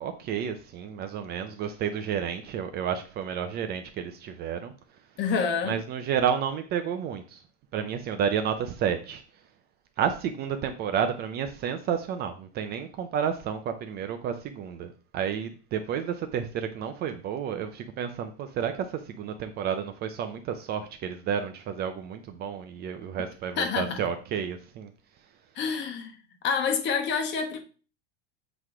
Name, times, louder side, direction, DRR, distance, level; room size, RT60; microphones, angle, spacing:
voice 1, 0.0-4.7 5.6-7.4 7.7-9.2 10.0-24.9, right 8 dB, 30° right, 0.5 m, -31 dB
voice 2, 5.2-5.8 23.6-24.0 25.5-26.2 26.4-27.6, left 6 dB, 35° left, 1.2 m, -27 dB
7.9 x 3.1 x 4.8 m
supercardioid pair, 155°, 33 cm